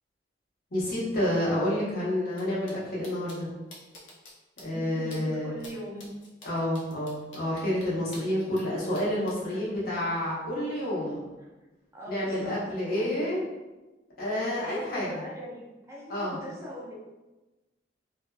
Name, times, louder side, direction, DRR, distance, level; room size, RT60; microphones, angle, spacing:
voice 1, 0.7-3.5 4.6-5.5 6.4-11.3 12.1-13.4 14.2-15.1 16.1-16.4, left 1 dB, 55° left, -7 dB, 0.9 m, -29 dB
sound 1, 2.3-2.4 2.7-2.8 3.0-3.4 3.7-4.3 4.6-4.7 5.1-5.2 5.6-5.7 6.0-8.6 8.9-9.3, left 2 dB, 90° left, 0.7 m, -48 dB
voice 2, 4.6-6.2 9.5-9.7 11.9-13.3 14.3-16.9, equal, 15° right, -5 dB, 0.4 m, -40 dB
2.5 x 2.3 x 2.3 m, 1.1 s
head